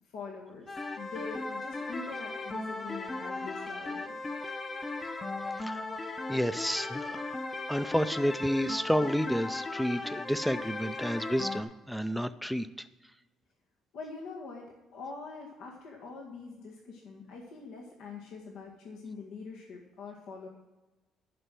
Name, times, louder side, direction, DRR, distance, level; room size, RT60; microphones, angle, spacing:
voice 1, 0.1-0.7 1.0-4.2 13.9-14.7 14.9-20.5, left 4 dB, 80° left, -1 dB, 1.8 m, -44 dB
sound 1, 0.7-11.6, left 2 dB, 20° left, 0.8 m, -37 dB
voice 2, 6.3-7.3 7.7-12.7, equal, ahead, 12 dB, 0.4 m, -30 dB
11.5 x 5.5 x 7.5 m, 1.1 s
cardioid pair, 130°, 0 cm